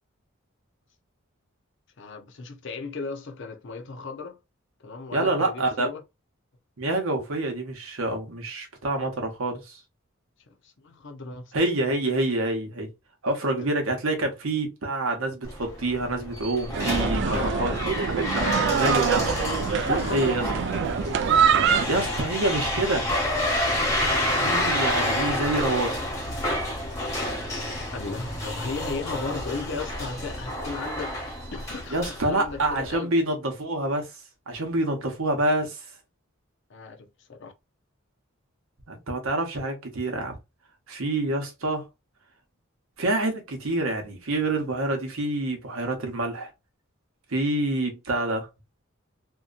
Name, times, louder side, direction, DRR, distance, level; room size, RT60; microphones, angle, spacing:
voice 1, 2.0-4.4 4.8-6.0 10.5-11.5 13.6-13.7 17.2-19.2 19.8-20.4 27.9-31.2 31.5-33.1 36.7-37.5, left 4 dB, 60° left, 0.6 m, -36 dB
voice 2, 5.1-5.9 6.8-9.8 11.5-12.9 13.2-18.4 18.8-19.3 20.1-20.4 21.6-23.1 24.3-26.0 31.9-34.1 34.5-35.8 38.9-40.4 40.9-41.9 43.0-46.5 47.3-48.5, right 2 dB, 80° right, 0.9 m, -27 dB
sound 1, 15.4-32.9, left 1 dB, 15° left, 0.9 m, -29 dB
sound 2, 16.7-21.9, right 7 dB, 55° right, 0.3 m, -24 dB
2.7 x 2.2 x 2.4 m
head